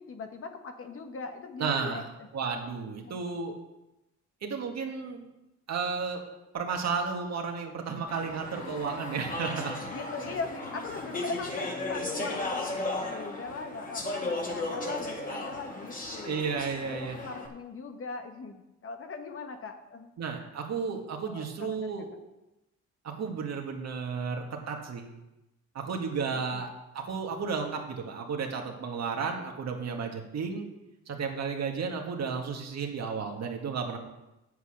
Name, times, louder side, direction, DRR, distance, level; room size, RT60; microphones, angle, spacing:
voice 1, 0.0-2.3 3.0-3.2 9.8-16.4 16.8-20.1 21.2-21.9 26.3-26.6, left 4 dB, 45° left, 6 dB, 1.4 m, -40 dB
voice 2, 1.6-2.0 2.3-3.5 4.4-5.3 5.7-6.2 6.5-9.7 16.2-17.2 20.2-22.1 23.0-25.1 25.7-30.7 31.1-34.0, right 5 dB, 60° right, 2 dB, 2.0 m, -33 dB
Speech / Chatter, 8.1-17.5, left 2 dB, 25° left, 2.2 m, -35 dB
8.4 x 8.0 x 6.5 m, 0.96 s
cardioid pair, 90°, 30 cm